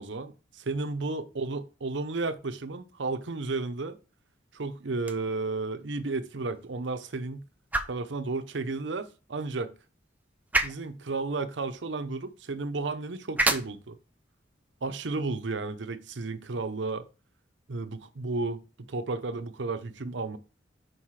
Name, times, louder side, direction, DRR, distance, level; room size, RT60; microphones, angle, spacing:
voice 1, 0.0-4.0 4.5-7.4 7.9-9.7 10.6-13.9 14.8-17.1 17.7-18.6 18.9-20.4, right 3 dB, 65° right, 0.7 m, -33 dB
sound 1, 4.9-17.0, right 2 dB, 10° right, 0.6 m, -36 dB
5.8 x 5.3 x 4.7 m
head